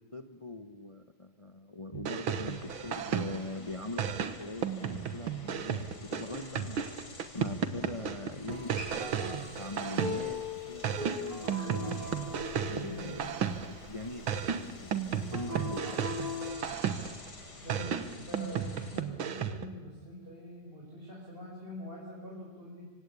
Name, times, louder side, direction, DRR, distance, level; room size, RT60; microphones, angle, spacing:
voice 1, 0.0-6.9 7.3-12.0 12.6-16.1, left 2 dB, 25° left, 8 dB, 0.8 m, -42 dB
sound 1, 1.9-3.6 4.0-10.4 10.8-13.9 14.3-17.3 17.7-19.7, right 8 dB, 70° right, 2.1 m, -34 dB
sound 2, 2.4-19.0, left 2 dB, 50° left, 4.0 m, -50 dB
Acoustic guitar, 8.5-13.7 15.3-16.5, left 3 dB, 90° right, 6.9 m, -40 dB
voice 2, 12.8-13.2 17.6-22.8, left 1 dB, 25° right, -4 dB, 6.1 m, -45 dB
26.0 x 26.0 x 8.5 m, 1.5 s
omnidirectional pair, 2.4 m